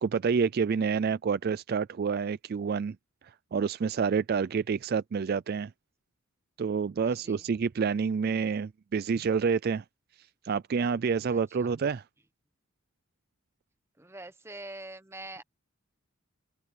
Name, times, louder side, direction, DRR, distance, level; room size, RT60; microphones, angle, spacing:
voice 1, 0.0-3.0 3.2-5.7 6.6-9.8 10.4-12.0, right 5 dB, 45° right, 0.3 m, -28 dB
voice 2, 7.0-7.4 11.3-11.7 14.0-15.4, right 2 dB, 10° right, 1.2 m, -45 dB
open air
head